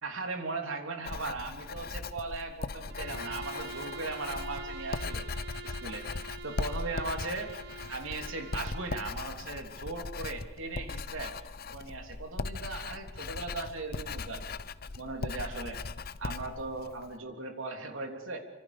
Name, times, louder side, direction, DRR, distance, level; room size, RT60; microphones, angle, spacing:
voice 1, 0.0-5.3 5.6-7.5 7.9-11.4 11.7-14.6 15.0-15.8 16.2-18.4, right 3 dB, 70° right, 3 dB, 3.3 m, -38 dB
Writing, 1.0-17.1, left 3 dB, 45° left, 0.7 m, -39 dB
Bowed string instrument, 2.9-9.1, right 3 dB, 55° right, 1.5 m, -45 dB
28.0 x 26.0 x 5.2 m, 1.1 s
head